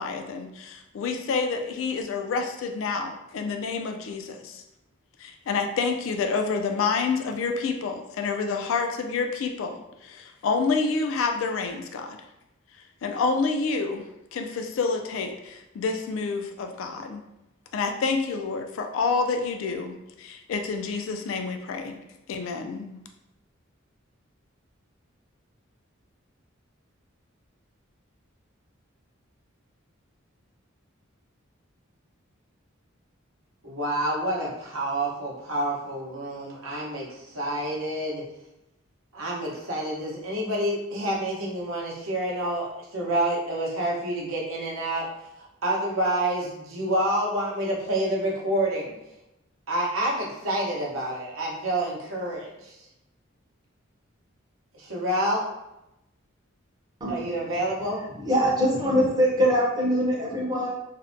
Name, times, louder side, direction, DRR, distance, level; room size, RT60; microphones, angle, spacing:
voice 1, 0.0-4.6 5.2-12.2 13.0-14.1 14.3-17.2 17.7-22.0 22.3-23.0, left 4 dB, 70° left, 5 dB, 0.3 m, -28 dB
voice 2, 33.6-38.2 39.1-42.7 42.9-45.1 45.6-48.9 49.7-52.8 54.7-55.4 57.1-58.0, right 1 dB, 80° right, -3 dB, 0.7 m, -28 dB
voice 3, 58.2-60.7, equal, 20° right, -3 dB, 0.5 m, -23 dB
2.5 x 2.1 x 2.5 m, 0.91 s
head